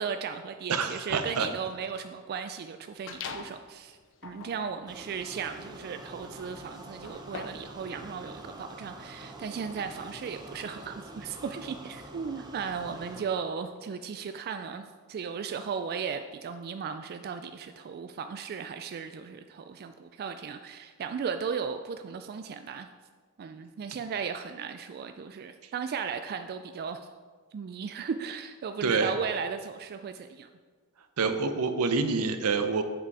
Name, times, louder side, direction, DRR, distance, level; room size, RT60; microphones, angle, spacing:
voice 1, 0.0-22.9 23.4-27.1 27.5-30.5, right 6 dB, 45° right, 8 dB, 0.3 m, -36 dB
voice 2, 0.7-1.5 28.8-29.1 31.2-32.8, right 4 dB, 80° right, 8 dB, 0.7 m, -27 dB
sound 1, 3.1-3.7 4.1-7.8, left 5 dB, 60° left, 0.6 m, -43 dB
sound 2, 4.9-13.2, right 1 dB, 20° right, 0.7 m, -46 dB
7.5 x 5.7 x 4.7 m, 1.5 s
head